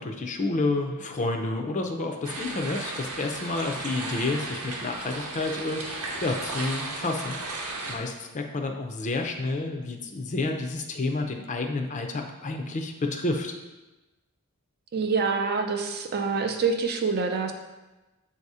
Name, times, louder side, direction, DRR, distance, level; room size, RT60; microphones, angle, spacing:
voice 1, 0.0-7.4 7.9-13.5, left 2 dB, 35° left, 4 dB, 0.5 m, -30 dB
sound 1, 2.2-8.0, right 2 dB, 90° right, 0.9 m, -35 dB
voice 2, 14.9-17.5, right 4 dB, 45° right, 5 dB, 0.5 m, -26 dB
7.2 x 2.8 x 4.7 m, 1.1 s
head